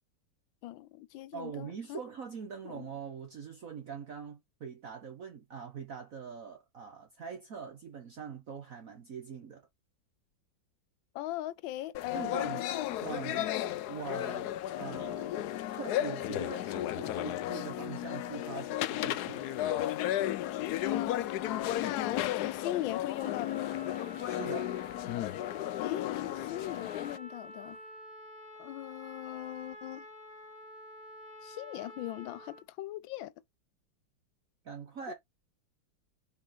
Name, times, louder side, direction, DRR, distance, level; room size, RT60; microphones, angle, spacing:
voice 1, 0.6-2.0 2.6-2.9 11.1-12.9 14.8-15.3 20.9-23.7 25.8-27.8 28.6-30.0 31.4-33.3 35.1-35.2, left 15 dB, 85° left, 1.4 m, -39 dB
voice 2, 1.3-9.7 12.1-12.7 13.0-19.6 24.2-24.8 34.6-35.1, right 6 dB, 50° right, 1.4 m, -43 dB
sound 1, 11.9-27.2, left 13 dB, 70° left, 1.0 m, -34 dB
Trumpet, 23.1-32.6, left 1 dB, 20° left, 2.0 m, -49 dB
5.4 x 4.3 x 5.7 m
omnidirectional pair, 2.0 m